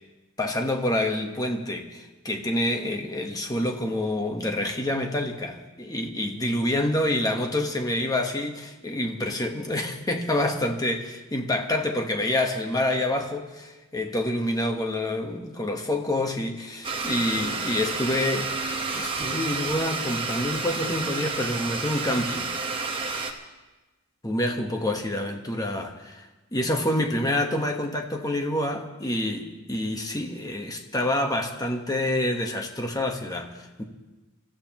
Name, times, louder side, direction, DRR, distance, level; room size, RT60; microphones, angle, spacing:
voice 1, 0.4-18.5 18.9-22.5 24.2-33.8, left 1 dB, 15° left, 3 dB, 1.2 m, -27 dB
Domestic sounds home sounds, 16.8-23.3, right 4 dB, 25° right, 1.2 m, -30 dB
28.0 x 14.0 x 3.0 m, 1.1 s
head